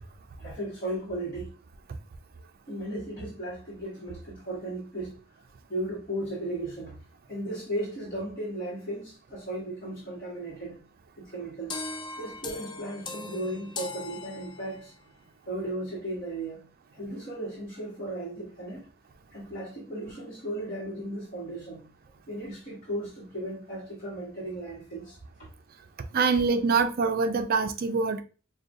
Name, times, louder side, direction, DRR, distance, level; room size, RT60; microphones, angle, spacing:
voice 1, 0.4-1.5 2.7-5.2 5.7-7.0 7.3-10.8 11.2-11.8 12.2-14.9 15.5-16.6 16.9-18.9 19.3-21.8 22.3-25.5, right 1 dB, 40° left, 1.2 m, -36 dB
sound 1, 11.7-15.0, left 3 dB, 20° left, 0.3 m, -39 dB
voice 2, 26.1-28.2, right 4 dB, 45° right, 0.4 m, -24 dB
4.9 x 2.2 x 2.5 m
head